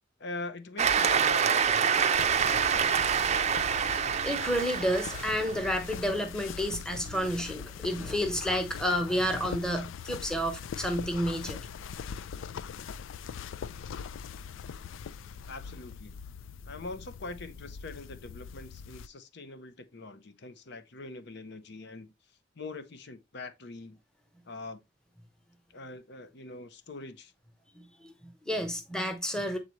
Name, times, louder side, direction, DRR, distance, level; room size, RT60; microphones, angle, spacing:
voice 1, 0.2-3.0 15.5-16.2 16.7-22.1 22.5-24.0 24.5-24.8 25.7-27.3, left 2 dB, 60° left, 0.8 m, -43 dB
Cheering / Applause, 0.8-5.7, right 7 dB, 35° right, 0.5 m, -26 dB
sound 1, 2.1-19.1, left 6 dB, 90° left, 0.4 m, -42 dB
voice 2, 3.5-11.6 27.7-29.6, equal, 5° left, 1.0 m, -31 dB
7.8 x 4.0 x 3.0 m
head